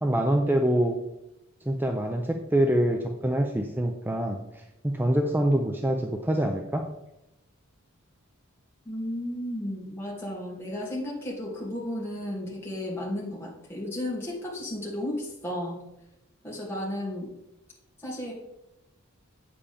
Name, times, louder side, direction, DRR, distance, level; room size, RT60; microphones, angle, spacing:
voice 1, 0.0-1.0 1.7-6.9, right 1 dB, 10° right, 3 dB, 0.5 m, -25 dB
voice 2, 8.8-15.8 16.4-17.3 18.0-18.3, left 1 dB, 10° left, -5 dB, 2.4 m, -33 dB
8.3 x 7.5 x 3.4 m, 0.88 s
head